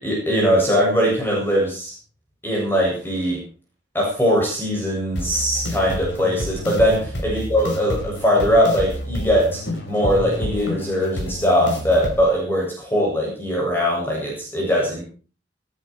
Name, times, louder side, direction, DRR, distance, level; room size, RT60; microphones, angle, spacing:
voice 1, 0.0-1.9 2.4-3.4 3.9-9.6 9.9-15.0, equal, 10° left, -3 dB, 7.7 m, -20 dB
sound 1, 5.2-12.2, equal, 75° left, 6.0 m, -29 dB
19.0 x 15.0 x 4.8 m, 0.38 s
head